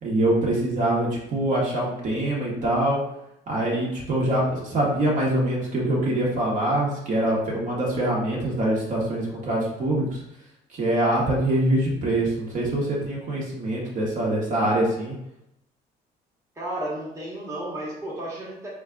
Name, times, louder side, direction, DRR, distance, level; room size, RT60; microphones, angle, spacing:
voice 1, 0.0-3.0 3.5-10.2 10.7-15.1, right 1 dB, 50° right, -4 dB, 1.3 m, -24 dB
voice 2, 16.5-18.7, right 1 dB, 15° right, -6 dB, 1.3 m, -33 dB
3.7 x 2.4 x 3.9 m, 0.83 s
cardioid pair, 110°, 17 cm